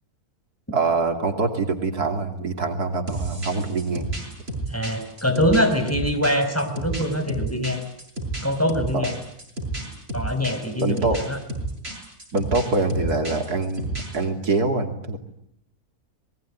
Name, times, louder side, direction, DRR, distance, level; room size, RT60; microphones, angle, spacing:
voice 1, 0.7-4.1 8.9-9.1 10.8-11.2 12.3-15.2, right 3 dB, 80° right, 5 dB, 3.4 m, -24 dB
sound 1, 3.1-14.2, right 2 dB, 40° right, 8.3 m, -31 dB
voice 2, 4.7-7.8 8.4-9.1 10.1-11.4, equal, 10° left, 5 dB, 4.9 m, -23 dB
26.5 x 21.5 x 9.7 m, 0.71 s
omnidirectional pair, 1.6 m